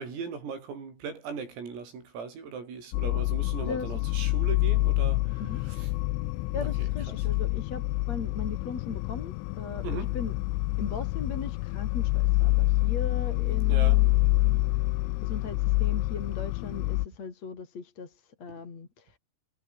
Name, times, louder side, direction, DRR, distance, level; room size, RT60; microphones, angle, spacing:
voice 1, 0.0-5.9 6.5-6.9 7.2-7.3 9.8-10.2 13.7-14.1, right 5 dB, 90° right, 9.8 m, -39 dB
sound 1, 2.9-17.1, left 20 dB, 85° left, 2.9 m, -27 dB
voice 2, 3.7-4.1 5.4-5.6 6.5-10.4 10.8-14.1 14.4-14.6 15.2-19.2, left 5 dB, 35° left, 4.5 m, -38 dB
omnidirectional pair, 5.9 m